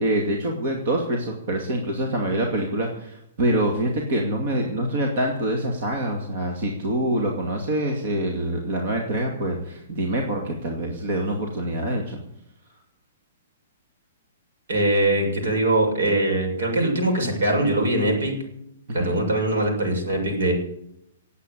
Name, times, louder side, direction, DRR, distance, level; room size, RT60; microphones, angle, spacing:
voice 1, 0.0-12.2 18.9-19.2, right 1 dB, 45° right, 2 dB, 2.4 m, -25 dB
voice 2, 14.7-18.3 18.9-20.5, right 1 dB, 75° right, 1 dB, 7.0 m, -22 dB
18.0 x 8.4 x 8.5 m, 0.78 s
hypercardioid pair, 180°, 0 cm